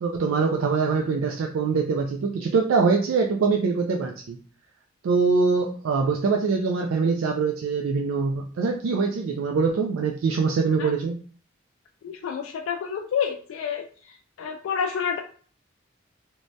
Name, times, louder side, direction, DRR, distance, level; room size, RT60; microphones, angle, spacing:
voice 1, 0.0-4.4 5.0-11.2, right 4 dB, 90° right, 2 dB, 0.3 m, -23 dB
voice 2, 12.0-13.9 14.4-15.2, left 7 dB, 90° left, 2 dB, 0.3 m, -28 dB
3.1 x 2.2 x 2.6 m, 0.44 s
head